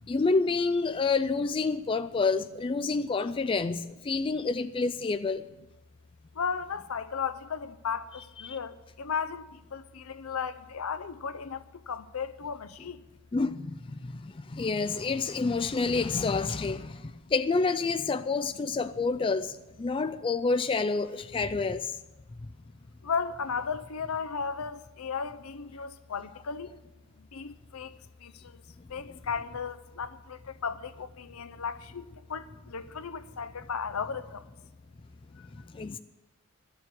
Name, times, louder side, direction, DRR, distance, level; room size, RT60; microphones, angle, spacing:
voice 1, 0.1-5.4 8.4-8.6 13.3-21.9 35.7-36.0, left 4 dB, 25° left, 0.3 m, -28 dB
voice 2, 6.3-13.0 14.0-14.1 16.9-17.0 18.8-18.9 23.0-26.8 27.2-28.6 28.9-34.4 35.4-36.0, left 6 dB, 75° left, 0.6 m, -35 dB
12.0 x 7.0 x 8.3 m
head